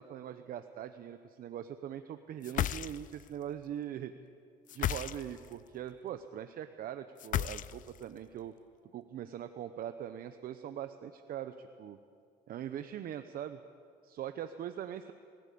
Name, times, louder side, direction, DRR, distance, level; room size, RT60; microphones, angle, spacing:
voice 1, 0.0-4.1 4.7-8.5 8.9-12.0 12.5-13.6 14.0-15.1, right 10 dB, 60° right, 9 dB, 0.8 m, -41 dB
sound 1, 2.4-3.3 4.7-5.5 7.2-8.0, left 11 dB, 50° left, 0.5 m, -34 dB
24.0 x 15.5 x 8.5 m, 2.3 s
cardioid pair, 110°, 17 cm